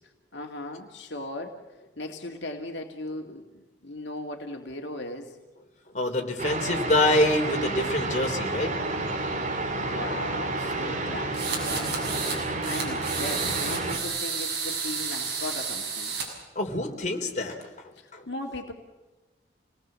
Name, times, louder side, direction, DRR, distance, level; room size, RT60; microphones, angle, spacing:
voice 1, 0.3-1.6 2.0-5.4 9.8-12.2 12.6-16.1 18.3-18.7, left 2 dB, 70° left, 3 dB, 2.3 m, -37 dB
voice 2, 5.9-8.8 12.6-12.7 16.6-18.3, left 1 dB, 40° left, 2 dB, 3.4 m, -26 dB
sound 1, 6.4-14.0, right 2 dB, 45° right, 3.5 m, -30 dB
sound 2, 11.3-12.4 12.6-16.3, right 5 dB, 65° right, 6.9 m, -31 dB
28.5 x 19.5 x 7.6 m, 1.2 s
head